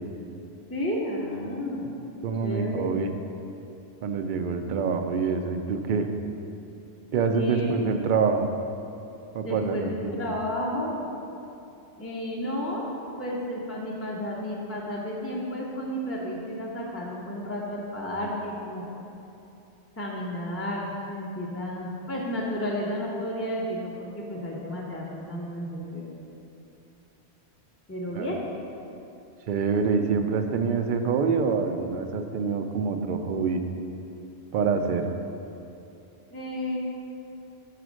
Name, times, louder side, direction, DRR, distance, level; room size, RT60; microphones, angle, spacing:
voice 1, 0.7-1.8 2.4-3.0 7.3-7.8 9.4-11.0 12.0-12.9 13.2-18.9 20.0-26.1 27.9-28.4 36.3-36.8, equal, 15° left, -4 dB, 0.6 m, -32 dB
voice 2, 2.2-3.1 4.0-6.1 7.1-8.5 9.3-10.3 28.1-28.3 29.5-33.6 34.5-35.1, right 5 dB, 60° right, 6 dB, 0.6 m, -26 dB
6.0 x 5.0 x 6.2 m, 2.8 s
omnidirectional pair, 1.1 m